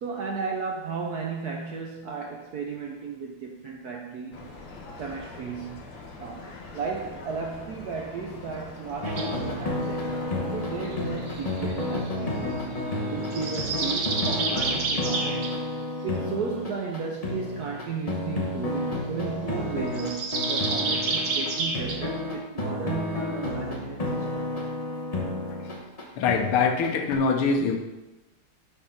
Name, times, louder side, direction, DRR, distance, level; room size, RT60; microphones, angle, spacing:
voice 1, 0.0-4.4 5.0-5.8 6.2-12.8 13.1-15.6 16.0-24.4, right 5 dB, 70° right, 1 dB, 0.9 m, -34 dB
sound 1, 4.3-11.7, left 3 dB, 60° left, 1.6 m, -43 dB
sound 2, 9.0-27.1, left 1 dB, 25° left, 0.9 m, -31 dB
sound 3, 9.1-9.3 10.8-12.1 13.2-15.5 19.9-22.0, right 3 dB, 50° right, 1.2 m, -29 dB
voice 2, 26.2-27.8, left 5 dB, 85° left, 4 dB, 1.8 m, -23 dB
8.5 x 3.8 x 5.7 m, 1.0 s
omnidirectional pair, 2.4 m